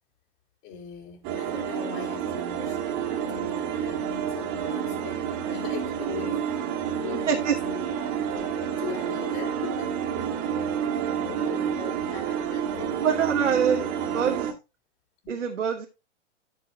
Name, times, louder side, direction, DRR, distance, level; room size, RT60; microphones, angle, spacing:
voice 1, 0.6-10.7 11.1-13.8 15.2-15.5, left 8 dB, 45° left, 4.2 m, -41 dB
sound 1, 1.2-14.5, right 8 dB, 35° right, 1.9 m, -29 dB
voice 2, 13.0-14.6 15.3-15.9, right 7 dB, 80° right, 1.4 m, -25 dB
14.0 x 5.6 x 2.8 m
figure-of-eight pair, 110°, 36 cm